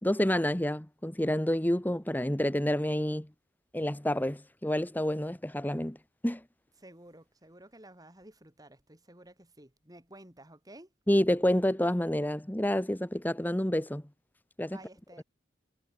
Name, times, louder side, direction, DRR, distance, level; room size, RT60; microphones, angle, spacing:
voice 1, 0.0-3.3 3.7-6.0 6.2-6.4 11.1-14.0 14.6-14.8 15.2-15.3, left 1 dB, 10° left, 1.0 m, -28 dB
voice 2, 6.8-10.9 14.7-15.2, right 1 dB, 20° right, 4.8 m, -53 dB
head